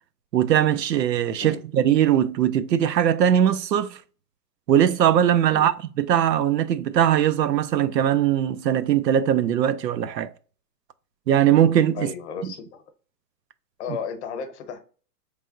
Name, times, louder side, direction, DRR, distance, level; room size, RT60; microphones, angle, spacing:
voice 1, 0.3-4.0 4.7-5.7 6.0-10.3 11.3-12.1, right 10 dB, 90° right, 0.6 m, -20 dB
voice 2, 11.9-12.8 13.8-14.8, left 6 dB, 45° left, 0.9 m, -34 dB
4.2 x 3.5 x 2.4 m
hypercardioid pair, 140°, 48 cm